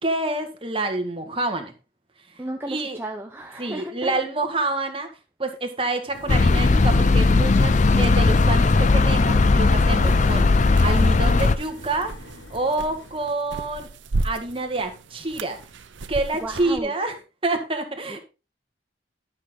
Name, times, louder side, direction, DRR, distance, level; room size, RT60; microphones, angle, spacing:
voice 1, 0.0-1.7 2.7-3.0 3.6-5.1 5.4-12.1 12.5-13.9 14.2-15.6 16.1-17.2 17.4-18.2, right 2 dB, 30° right, 4 dB, 1.6 m, -27 dB
voice 2, 2.4-4.2 16.4-16.9 18.1-18.2, right 1 dB, 10° right, 2 dB, 0.7 m, -34 dB
sound 1, 6.1-13.2, left 2 dB, 90° left, 1.9 m, -44 dB
sound 2, 6.3-11.6, left 3 dB, 40° left, 0.5 m, -17 dB
sound 3, 10.0-16.8, right 2 dB, 85° right, 0.7 m, -34 dB
11.5 x 6.3 x 3.8 m, 0.30 s
head